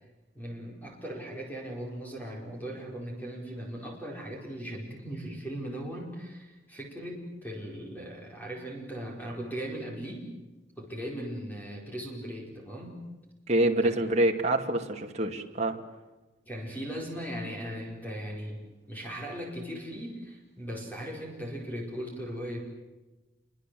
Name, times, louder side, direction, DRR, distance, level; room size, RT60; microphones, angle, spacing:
voice 1, 0.3-10.3 10.8-13.0 13.8-14.0 16.5-22.6, equal, 10° left, 0 dB, 4.8 m, -38 dB
voice 2, 13.5-15.8, right 1 dB, 35° right, 2 dB, 2.5 m, -26 dB
28.0 x 24.0 x 7.8 m, 1.1 s
head